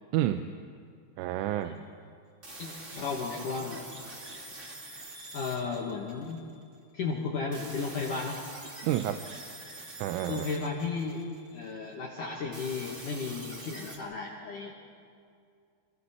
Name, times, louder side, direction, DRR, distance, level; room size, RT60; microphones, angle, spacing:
voice 1, 0.1-0.5 1.2-1.8 8.8-9.2 10.0-10.5, right 13 dB, 85° right, 8 dB, 3.2 m, -29 dB
sound 1, 2.4-6.6 7.5-11.7 12.5-14.0, right 1 dB, 55° right, 0.8 m, -45 dB
voice 2, 2.6-3.8 5.3-6.5 6.9-8.4 10.3-11.2 11.5-14.7, left 4 dB, 60° left, -2 dB, 2.3 m, -34 dB
27.5 x 27.0 x 4.3 m, 2.4 s
omnidirectional pair, 5.8 m